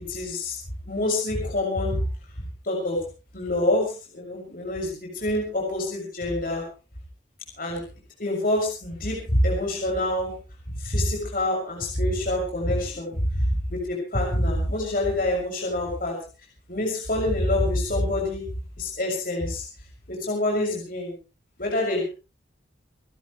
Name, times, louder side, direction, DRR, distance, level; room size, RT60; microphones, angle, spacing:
voice 1, 0.1-0.5 0.9-2.0 2.6-3.0 3.3-6.6 7.6-7.8 8.2-10.3 10.7-16.1 16.7-18.4 18.8-19.6 20.1-21.1 21.6-22.0, left 1 dB, 50° left, -1 dB, 6.6 m, -26 dB
29.0 x 12.5 x 3.3 m, 0.34 s
head